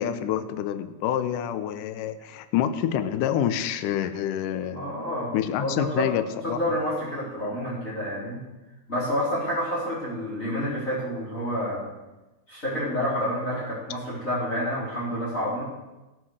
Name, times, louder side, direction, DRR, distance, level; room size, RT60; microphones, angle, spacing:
voice 1, 0.0-4.9 5.3-6.6, left 10 dB, 80° left, 10 dB, 1.9 m, -27 dB
voice 2, 4.7-6.1 6.4-8.4 8.9-11.8 12.5-15.6, equal, 20° left, -7 dB, 3.8 m, -29 dB
16.0 x 7.8 x 6.3 m, 1.1 s
omnidirectional pair, 4.6 m